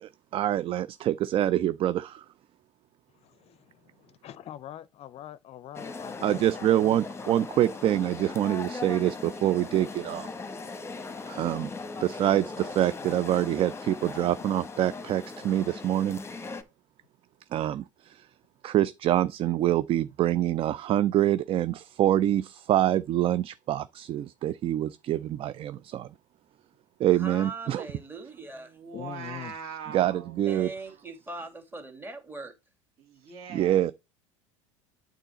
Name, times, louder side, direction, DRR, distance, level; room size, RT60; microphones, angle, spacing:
voice 1, 0.0-2.3 6.2-10.8 11.3-11.7 12.0-16.2 17.5-18.3 18.6-26.1 27.0-27.9 29.9-30.7 33.5-33.9, right 12 dB, 35° right, 0.4 m, -26 dB
voice 2, 3.1-7.0 28.9-29.5, left 11 dB, 40° left, 0.6 m, -44 dB
Crowd ambience, 5.7-16.6, left 3 dB, 15° left, 1.1 m, -39 dB
voice 3, 27.2-28.8 30.5-32.5, right 3 dB, 15° right, 2.1 m, -40 dB
voice 4, 28.4-30.4 30.8-31.0 33.0-33.9, right 7 dB, 60° right, 2.8 m, -42 dB
9.0 x 3.9 x 4.2 m
hypercardioid pair, 80°, 16 cm